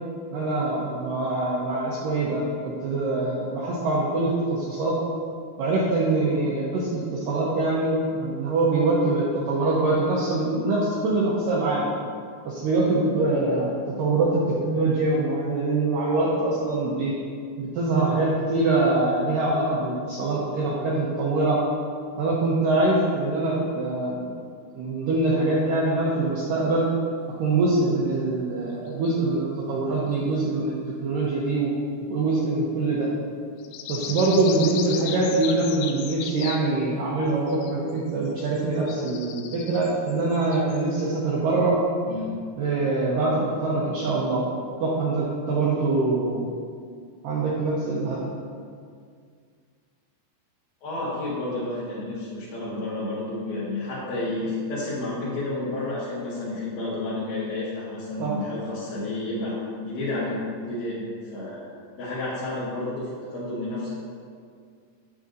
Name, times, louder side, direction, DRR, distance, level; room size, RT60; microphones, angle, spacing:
voice 1, 0.3-4.9 5.6-11.8 12.5-17.1 17.6-21.6 22.2-24.3 24.7-26.8 27.4-30.7 31.0-31.7 32.1-33.1 33.9-41.8 42.6-44.4 44.8-46.5 47.2-48.2 58.2-58.3, right 2 dB, 80° right, -6 dB, 2.0 m, -24 dB
sound 1, 28.9-29.2 30.1-30.2 33.6-36.7 37.5-37.9 38.3-40.9, left 9 dB, 85° left, 2.7 m, -36 dB
voice 2, 34.2-34.5 42.1-42.3 50.8-61.7 62.0-63.9, left 2 dB, 60° left, -11 dB, 2.9 m, -31 dB
8.9 x 8.4 x 2.7 m, 2.1 s
omnidirectional pair, 5.1 m